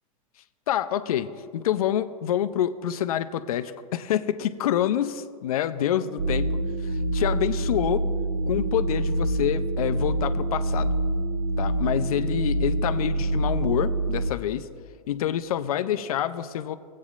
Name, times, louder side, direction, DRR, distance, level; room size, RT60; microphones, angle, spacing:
voice 1, 0.7-8.0 8.5-10.9 11.6-14.7 15.1-16.7, left 10 dB, 80° left, 12 dB, 0.5 m, -27 dB
sound 1, 6.2-14.3, right 1 dB, 50° right, 0.5 m, -26 dB
17.0 x 8.3 x 2.4 m, 2.2 s
hypercardioid pair, 105°, 18 cm